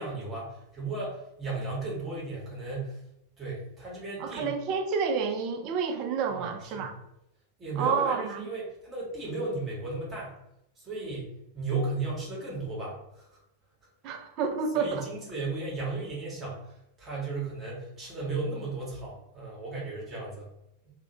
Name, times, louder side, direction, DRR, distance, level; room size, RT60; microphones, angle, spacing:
voice 1, 0.0-3.0 3.4-4.6 6.3-7.0 7.6-10.4 10.8-13.4 14.7-20.5, right 3 dB, 20° right, -4 dB, 0.9 m, -35 dB
voice 2, 4.2-6.9 7.8-8.5 14.0-15.1, right 5 dB, 40° right, 5 dB, 0.4 m, -29 dB
2.3 x 2.1 x 2.8 m, 0.83 s
figure-of-eight pair, 90°, 0 cm